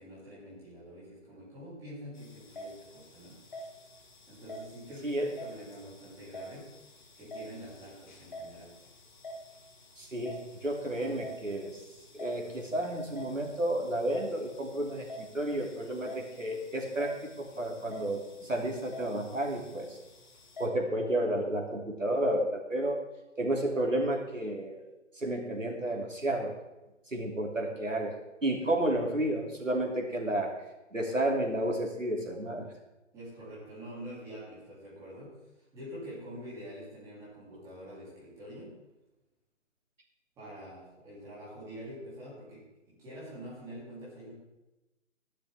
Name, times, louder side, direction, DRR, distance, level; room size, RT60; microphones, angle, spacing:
voice 1, 0.0-3.4 4.3-6.7 7.2-8.7 33.1-35.3 35.7-38.7 40.4-44.3, equal, 10° right, -8 dB, 3.3 m, -46 dB
sound 1, 2.1-20.7, left 1 dB, 35° left, 1.9 m, -48 dB
voice 2, 10.0-11.8 12.1-15.1 15.3-20.0 20.6-23.0 23.4-24.8 25.2-26.5 27.1-28.1 28.4-30.5 30.9-32.7, right 1 dB, 75° right, 1 dB, 3.0 m, -31 dB
15.5 x 11.5 x 3.6 m, 1.0 s
figure-of-eight pair, 145°, 38 cm